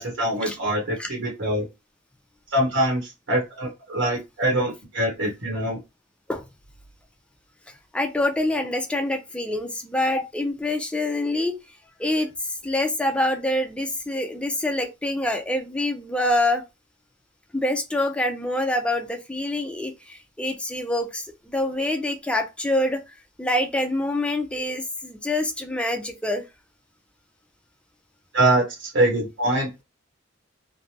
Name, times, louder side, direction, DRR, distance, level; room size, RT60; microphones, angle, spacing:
voice 1, 0.0-1.6 2.5-5.8 28.3-29.8, right 1 dB, 75° right, 1.0 m, -24 dB
voice 2, 7.9-11.6 12.0-16.6 17.5-23.0 23.4-26.4, left 1 dB, 5° left, 0.4 m, -26 dB
3.2 x 2.1 x 2.7 m
head